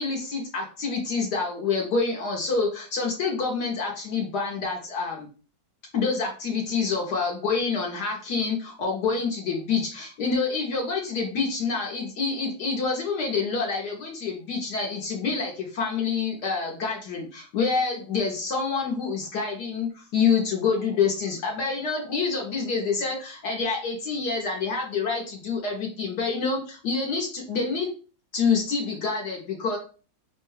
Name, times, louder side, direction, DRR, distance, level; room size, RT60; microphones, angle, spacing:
voice 1, 0.0-5.3 5.9-27.9 28.3-29.8, left 5 dB, 65° left, 0 dB, 1.2 m, -27 dB
5.2 x 2.2 x 3.2 m, 0.37 s
omnidirectional pair, 2.1 m